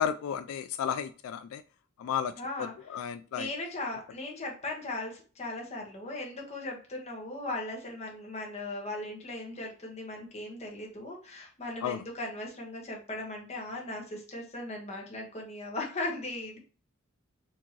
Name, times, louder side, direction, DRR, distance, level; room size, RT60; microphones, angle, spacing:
voice 1, 0.0-1.6 2.0-2.3 2.9-3.5 11.8-12.0, left 8 dB, 85° left, 12 dB, 0.3 m, -32 dB
voice 2, 2.4-16.6, left 2 dB, 30° left, -1 dB, 1.2 m, -38 dB
4.4 x 2.9 x 2.9 m, 0.38 s
head